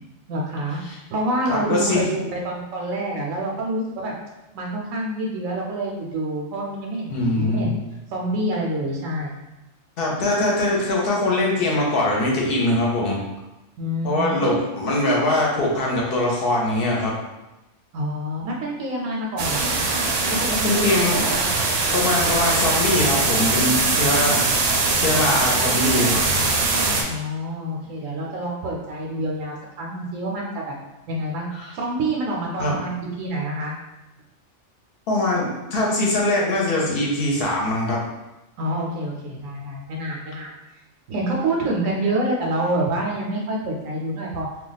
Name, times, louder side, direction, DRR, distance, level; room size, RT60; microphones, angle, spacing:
voice 1, 0.3-0.8 1.1-4.1 4.5-7.7 8.1-9.3 13.8-14.5 17.9-19.8 20.3-21.5 27.1-30.7 31.1-31.5 31.7-33.7 38.6-40.5 41.1-44.5, right 1 dB, 90° right, -2 dB, 1.0 m, -27 dB
voice 2, 1.5-2.1 7.1-7.7 10.0-13.2 14.0-17.1 20.6-21.3 21.9-24.4 24.9-26.2 31.6-31.7 32.6-32.7 35.1-38.0, left 1 dB, 55° left, -2 dB, 0.8 m, -22 dB
sound 1, 19.4-27.0, right 3 dB, 65° right, 0.7 m, -21 dB
2.3 x 2.3 x 3.9 m, 0.98 s
omnidirectional pair, 1.3 m